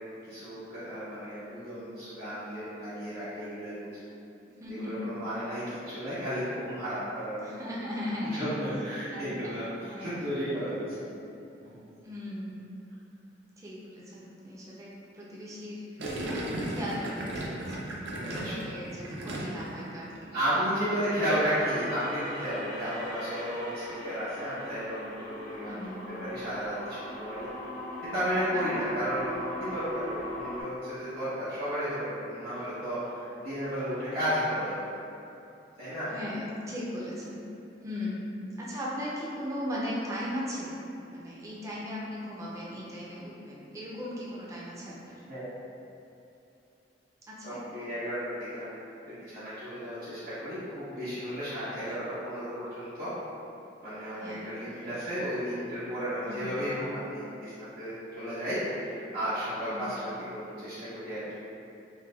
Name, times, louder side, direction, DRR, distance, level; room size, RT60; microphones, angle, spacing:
voice 1, 0.3-3.9 4.7-7.4 8.3-9.7 10.0-11.1 11.6-11.8 18.0-18.6 20.3-25.8 26.1-27.4 28.0-35.0 35.8-36.1 45.3-45.5 47.4-48.7 49.1-53.1 53.8-61.3, equal, 55° right, -16 dB, 1.0 m, -33 dB
voice 2, 4.6-5.1 7.3-8.5 9.1-9.6 9.9-10.2 12.0-12.7 13.6-17.8 18.2-20.2 25.6-26.0 28.8-28.9 36.1-37.4 37.8-38.2 38.6-40.7 41.1-45.2 47.3-47.6 51.6-52.0 54.1-54.5 56.3-56.6 59.6-59.9, left 1 dB, 15° right, -7 dB, 0.3 m, -38 dB
Gurgling, 16.0-19.8 20.1-20.5, right 1 dB, 90° right, 0.5 m, -35 dB
sound 1, 21.2-30.6, left 1 dB, 70° left, 1.0 m, -39 dB
3.2 x 2.2 x 2.2 m, 2.7 s
head